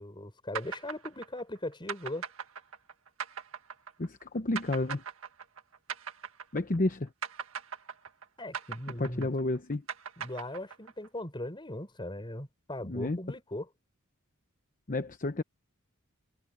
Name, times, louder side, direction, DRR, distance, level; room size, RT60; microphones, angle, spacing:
voice 1, 0.0-2.2 8.4-9.3 10.2-13.7, left 1 dB, 20° left, 5.5 m, -39 dB
sound 1, 0.5-6.9 7.2-11.1, right 7 dB, 70° right, 1.8 m, -40 dB
voice 2, 4.0-5.0 6.5-7.1 9.0-9.8 12.9-13.2 14.9-15.4, left 2 dB, 40° left, 0.9 m, -31 dB
head